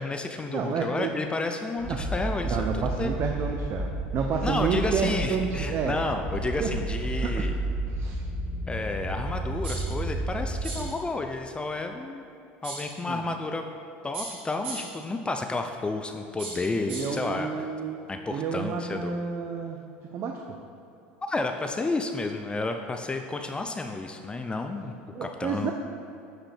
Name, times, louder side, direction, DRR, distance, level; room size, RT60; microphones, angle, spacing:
voice 1, 0.0-3.2 4.4-7.5 8.7-12.2 12.6-13.7 14.0-17.5 18.1-19.2 21.3-24.9 25.2-25.7, left 3 dB, 15° left, 5 dB, 0.6 m, -31 dB
voice 2, 0.5-1.1 1.9-2.0 2.4-6.0 6.6-6.7 7.2-7.5 7.9-8.3 10.8-10.9 13.1-13.2 16.9-19.8 20.1-20.6 25.1-25.7, right 6 dB, 45° right, 2 dB, 0.7 m, -30 dB
sound 1, 1.8-10.8, right 2 dB, 20° right, 1.9 m, -31 dB
sound 2, 9.6-10.0 10.6-11.0 12.6-13.0 14.1-15.0 16.4-17.2, right 3 dB, 85° right, 1.9 m, -38 dB
10.0 x 5.1 x 4.4 m, 2.7 s
hypercardioid pair, 90°, 6 cm